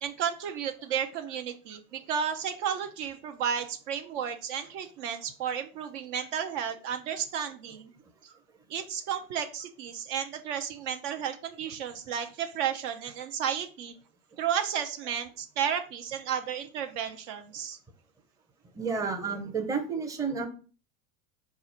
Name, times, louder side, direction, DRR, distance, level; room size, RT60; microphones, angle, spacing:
voice 1, 0.0-7.9 8.2-8.3 8.7-13.9 14.4-17.8, right 8 dB, 55° right, 7 dB, 0.6 m, -33 dB
voice 2, 18.8-20.5, right 5 dB, 10° right, 4 dB, 0.6 m, -31 dB
4.0 x 2.4 x 4.2 m, 0.37 s
hypercardioid pair, 85°, 44 cm